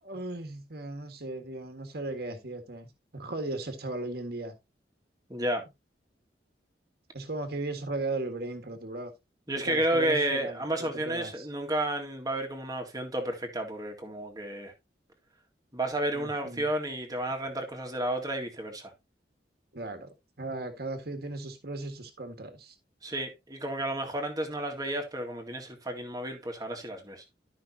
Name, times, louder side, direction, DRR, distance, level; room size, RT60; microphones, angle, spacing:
voice 1, 0.0-4.6 7.1-9.1 9.6-11.5 16.1-16.7 19.7-22.8, right 2 dB, 60° right, 1.7 m, -37 dB
voice 2, 5.3-5.6 9.5-14.7 15.7-18.9 23.0-27.2, right 1 dB, 20° right, 2.0 m, -31 dB
13.0 x 5.7 x 2.8 m
head